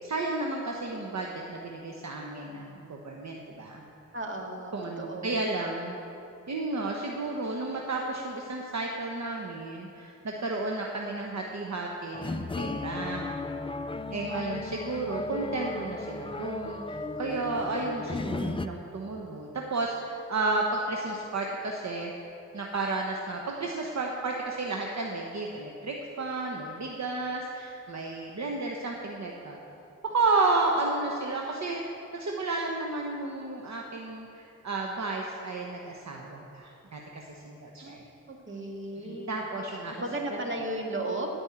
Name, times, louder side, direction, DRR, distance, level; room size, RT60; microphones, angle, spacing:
voice 1, 0.0-3.8 4.7-6.0 6.5-13.2 14.1-22.1 22.5-29.6 30.0-38.0 39.0-39.9, right 3 dB, 60° right, 0 dB, 1.0 m, -32 dB
voice 2, 4.1-5.4 37.8-38.0 38.3-39.3 39.9-41.3, right 1 dB, 40° right, 0 dB, 2.0 m, -35 dB
sound 1, 12.1-18.7, left 3 dB, 20° left, 0.4 m, -35 dB
15.5 x 5.4 x 8.5 m, 2.8 s
wide cardioid pair, 95°, 31 cm